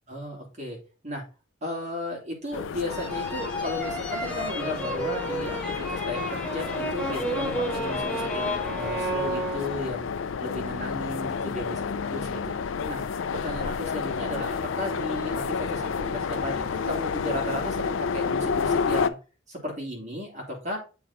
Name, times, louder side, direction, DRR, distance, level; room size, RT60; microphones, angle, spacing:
voice 1, 0.1-0.8 1.0-1.2 1.6-10.1 10.4-12.5 12.8-13.0 13.3-19.2 19.5-20.8, left 1 dB, 35° right, -1 dB, 2.7 m, -35 dB
sound 1, 2.5-19.1, left 5 dB, 70° left, 0.5 m, -30 dB
sound 2, 2.9-10.1, right 1 dB, 5° left, 1.3 m, -32 dB
7.7 x 4.2 x 4.1 m, 0.33 s
head